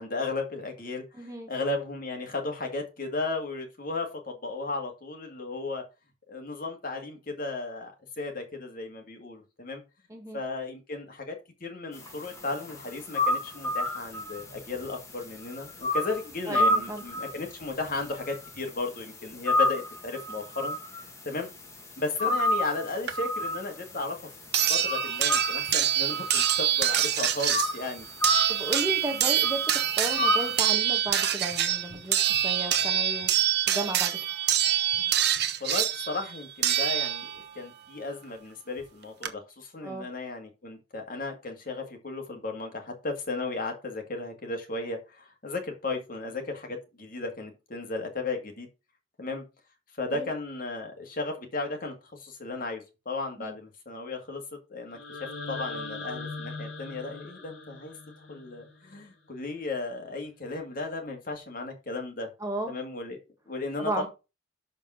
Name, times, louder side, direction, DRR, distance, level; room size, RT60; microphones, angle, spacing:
voice 1, 0.0-5.8 6.3-9.8 10.3-20.8 21.2-21.5 22.0-24.2 24.7-28.1 35.6-48.7 49.2-49.4 49.9-54.4 54.7-57.9 58.3-62.3 62.7-63.2 63.5-64.1, left 3 dB, 45° left, 2.0 m, -35 dB
voice 2, 1.1-1.5 10.1-10.4 16.5-17.0 22.3-22.4 28.5-33.3 33.7-34.2 39.8-40.1 50.1-50.3 53.4-53.5 62.4-62.8 63.8-64.1, right 1 dB, 15° right, 1.5 m, -34 dB
sound 1, 11.9-30.7, left 1 dB, 15° left, 1.6 m, -32 dB
sound 2, 23.1-23.2 24.5-37.5 38.8-38.9 39.2-39.3, right 11 dB, 50° right, 0.9 m, -26 dB
sound 3, 54.9-59.0, left 3 dB, 60° left, 2.5 m, -40 dB
6.4 x 5.2 x 5.7 m
head